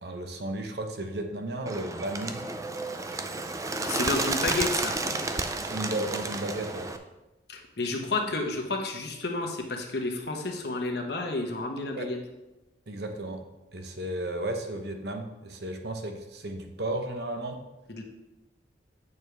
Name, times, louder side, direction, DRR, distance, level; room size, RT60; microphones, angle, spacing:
voice 1, 0.0-2.4 5.6-6.9 12.0-12.1 12.9-13.4 13.7-17.6, right 1 dB, 60° right, 4 dB, 0.9 m, -34 dB
Bird, 1.7-7.0, right 3 dB, 15° right, 0.4 m, -31 dB
voice 2, 3.8-5.2 7.5-12.2 17.9-18.0, left 3 dB, 60° left, 2 dB, 1.1 m, -31 dB
8.4 x 6.8 x 3.4 m, 1.0 s
head